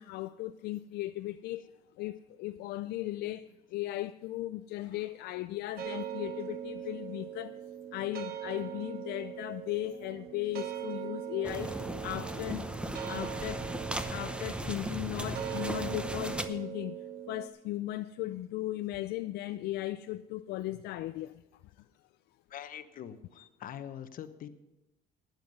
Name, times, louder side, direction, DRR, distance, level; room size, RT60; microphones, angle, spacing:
voice 1, 0.0-1.7 2.0-7.6 7.9-12.7 13.1-13.7 14.1-21.4, left 15 dB, 75° left, 0.4 m, -37 dB
sound 1, 5.8-17.5, right 10 dB, 65° right, 1.1 m, -41 dB
sound 2, 11.4-16.5, right 1 dB, 5° right, 0.7 m, -37 dB
voice 2, 22.5-24.5, left 9 dB, 55° left, 0.9 m, -44 dB
12.5 x 9.1 x 5.4 m
cardioid pair, 110°, 17 cm